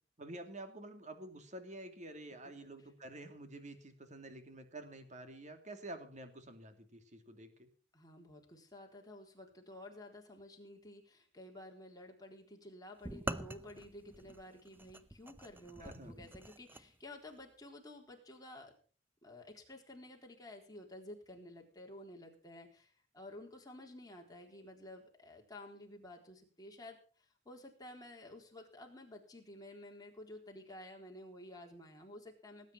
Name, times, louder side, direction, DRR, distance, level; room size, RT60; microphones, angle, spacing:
voice 1, 0.2-7.7 15.8-16.1, right 1 dB, 40° right, 7 dB, 2.7 m, -49 dB
voice 2, 7.9-18.7 19.2-27.0 27.5-32.7, left 1 dB, 20° left, 1 dB, 3.9 m, -52 dB
sound 1, 13.0-16.9, right 1 dB, 10° right, 0.8 m, -45 dB
19.0 x 9.3 x 6.0 m, 0.42 s
head